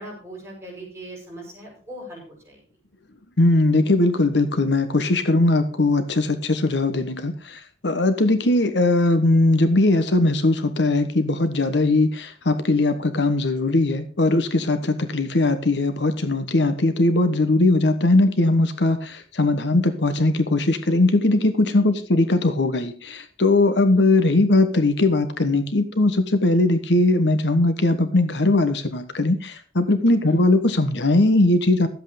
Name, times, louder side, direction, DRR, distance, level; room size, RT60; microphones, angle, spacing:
voice 1, 0.0-2.6 21.8-22.0 30.2-30.4, right 1 dB, 15° right, -2 dB, 5.6 m, -39 dB
voice 2, 3.4-31.9, left 2 dB, 80° left, 9 dB, 1.2 m, -20 dB
13.0 x 8.1 x 5.0 m, 0.42 s
head